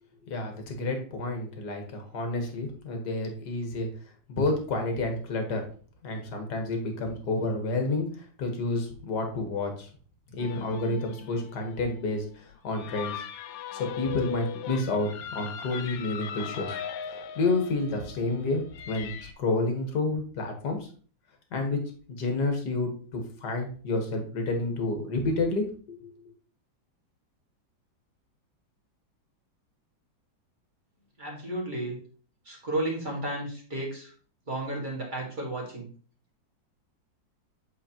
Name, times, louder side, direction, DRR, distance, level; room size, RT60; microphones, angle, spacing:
voice 1, 0.3-3.9 4.3-5.6 6.0-8.1 8.4-9.9 10.3-12.2 12.6-13.2 13.7-16.7 17.4-19.1 19.4-20.8 21.5-21.8 22.1-25.7 26.0-26.1, left 2 dB, 60° left, 4 dB, 1.8 m, -29 dB
sound 1, 10.4-19.3, left 8 dB, 80° left, 1.4 m, -39 dB
voice 2, 31.2-32.0 32.4-34.1 34.5-35.9, right 1 dB, 25° right, -3 dB, 2.0 m, -33 dB
7.9 x 4.4 x 2.9 m, 0.42 s
omnidirectional pair, 2.1 m